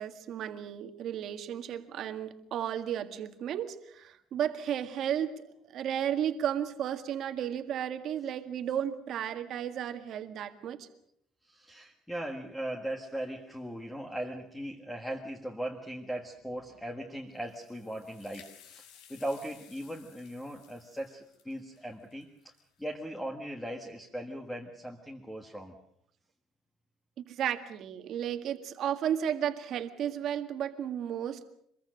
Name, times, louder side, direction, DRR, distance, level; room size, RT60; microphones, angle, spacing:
voice 1, 0.0-5.4 5.7-10.9 27.2-31.4, right 9 dB, 45° right, 8 dB, 1.8 m, -33 dB
voice 2, 11.4-18.8 19.1-22.5 22.8-25.8, right 1 dB, 5° left, 2 dB, 1.7 m, -39 dB
sound 1, 17.3-22.9, left 9 dB, 90° left, 5.8 m, -58 dB
25.5 x 22.0 x 6.5 m, 0.70 s
cardioid pair, 175°, 0 cm